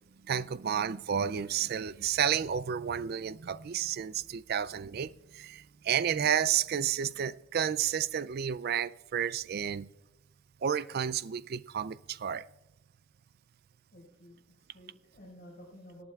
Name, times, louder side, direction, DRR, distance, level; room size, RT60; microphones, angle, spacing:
voice 1, 0.2-9.9 10.6-12.5, right 8 dB, 45° right, 0.3 m, -31 dB
voice 2, 13.9-16.0, equal, 40° left, 4.9 m, -53 dB
26.0 x 8.9 x 2.4 m
head